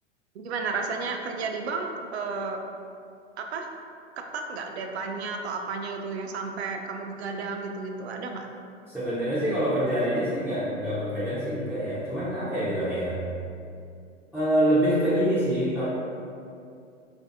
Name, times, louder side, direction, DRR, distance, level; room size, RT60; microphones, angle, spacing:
voice 1, 0.3-2.6 3.4-3.7 4.2-8.5, right 4 dB, 60° right, 3 dB, 0.4 m, -32 dB
voice 2, 8.9-13.2 14.3-15.8, equal, ahead, -14 dB, 0.3 m, -25 dB
3.3 x 2.5 x 2.6 m, 2.4 s
figure-of-eight pair, 100°, 36 cm